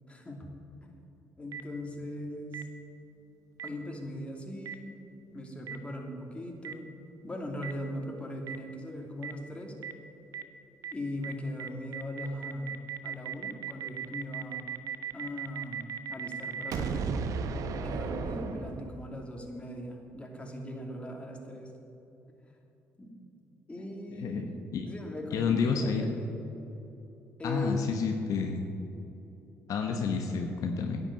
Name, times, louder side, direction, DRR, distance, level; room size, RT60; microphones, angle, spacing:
voice 1, 0.1-0.5 0.8-0.9 1.4-2.7 3.6-4.9 5.3-9.7 10.9-14.6 15.1-17.1 17.7-21.7 23.0-23.1 23.7-26.3 27.4-27.8, left 1 dB, 20° left, 1 dB, 2.7 m, -39 dB
Boom, 1.5-1.6 2.5-2.6 3.6-3.7 4.7-4.8 5.7-5.8 6.6-6.7 7.6-7.7 8.5-8.6 9.2-9.3 9.8-9.9 10.3-10.4 10.8-10.9 11.2-11.3 11.6-19.2, right 6 dB, 65° right, 0.8 m, -35 dB
voice 2, 24.1-24.5 24.7-24.9 25.3-26.1 27.4-28.6 29.7-31.0, left 5 dB, 65° left, 3 dB, 1.1 m, -29 dB
10.5 x 8.3 x 8.5 m, 3.0 s
supercardioid pair, 65°, 6 cm